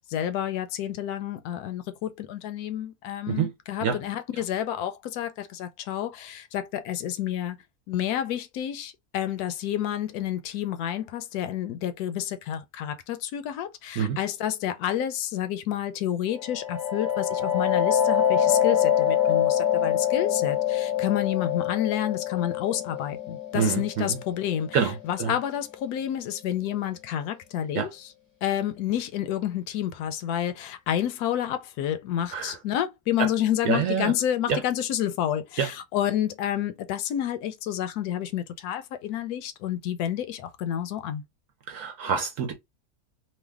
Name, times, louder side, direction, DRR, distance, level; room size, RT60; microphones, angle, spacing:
voice 1, 0.1-7.6 7.9-24.8 25.0-28.1 28.4-41.2, left 11 dB, 75° left, 1.0 m, -29 dB
sound 1, 16.3-25.8, left 9 dB, 20° left, 0.5 m, -25 dB
voice 2, 23.5-24.2 24.7-25.3 27.7-27.9 32.3-32.6 33.2-33.3 33.6-34.1 34.5-34.6 35.6-35.7 41.7-42.5, right 7 dB, 65° right, 1.0 m, -26 dB
3.2 x 2.2 x 3.3 m
omnidirectional pair, 1.7 m